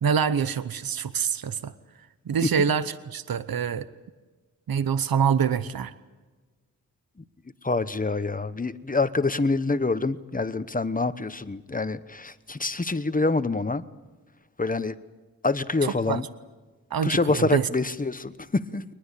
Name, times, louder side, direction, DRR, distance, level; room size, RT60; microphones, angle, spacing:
voice 1, 0.0-1.7 2.3-3.9 4.7-5.9 15.8-16.2 16.9-17.7, right 7 dB, 85° right, 14 dB, 0.9 m, -25 dB
voice 2, 7.6-13.8 14.6-14.9 15.4-16.2 17.0-18.8, left 3 dB, 25° left, 13 dB, 1.0 m, -26 dB
23.5 x 20.5 x 8.3 m, 1.3 s
wide cardioid pair, 95°, 35 cm